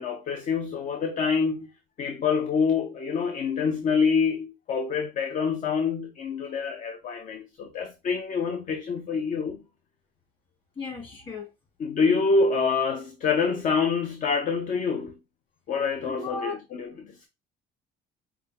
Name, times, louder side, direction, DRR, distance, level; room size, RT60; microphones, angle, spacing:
voice 1, 0.0-1.7 2.0-9.6 11.8-15.1 15.7-17.3, left 5 dB, 50° left, 0.7 m, -26 dB
voice 2, 10.8-11.5 16.1-16.6, left 4 dB, 30° left, 2.6 m, -35 dB
5.7 x 2.3 x 3.6 m
cardioid pair, 110°, 17 cm